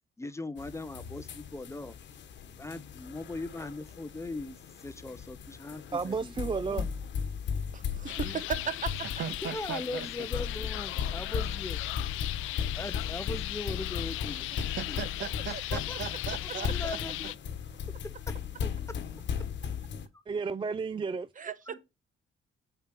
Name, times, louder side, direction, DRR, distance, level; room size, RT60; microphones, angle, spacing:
voice 1, 0.2-1.9 2.6-6.3 6.7-6.9 8.2-8.4 9.4-12.1 12.7-14.5 14.9-15.0 15.5-16.0 16.6-17.3 18.3-18.7 20.1-20.2 21.7-21.8, left 2 dB, 15° left, 0.7 m, -40 dB
sound 1, 0.6-20.1, left 7 dB, 65° left, 1.3 m, -37 dB
voice 2, 5.9-6.9 20.3-21.3, right 5 dB, 25° right, 0.5 m, -32 dB
voice 3, 7.7-8.9 21.4-21.5, right 6 dB, 40° right, 1.0 m, -35 dB
sound 2, 8.1-17.4, left 17 dB, 90° left, 0.4 m, -38 dB
voice 4, 9.2-10.1 14.6-17.0 21.7-21.8, right 8 dB, 65° right, 1.6 m, -38 dB
7.3 x 4.5 x 5.9 m
cardioid pair, 90°, 20 cm